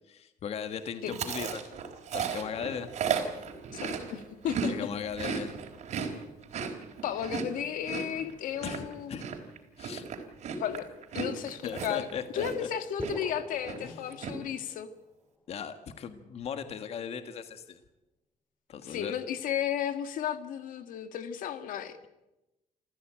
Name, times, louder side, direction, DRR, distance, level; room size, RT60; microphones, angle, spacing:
voice 1, 0.1-1.6 2.1-2.9 4.7-5.5 8.6-9.3 9.8-10.0 11.6-12.7 13.8-14.2 15.5-17.8 18.7-19.1, left 7 dB, 50° left, 9 dB, 1.6 m, -38 dB
Chewing mastication, 1.1-4.7 5.0-12.7 13.0-13.4 13.6-14.3, right 6 dB, 55° right, 4.0 m, -35 dB
voice 2, 3.8-4.9 7.0-9.2 10.6-10.9 11.1-12.1 12.3-14.9 18.8-22.0, left 9 dB, 80° left, 9 dB, 1.9 m, -34 dB
sound 1, 13.0-14.9, equal, 10° left, 1.9 m, -41 dB
27.5 x 14.5 x 9.0 m, 0.96 s
cardioid pair, 155°, 14 cm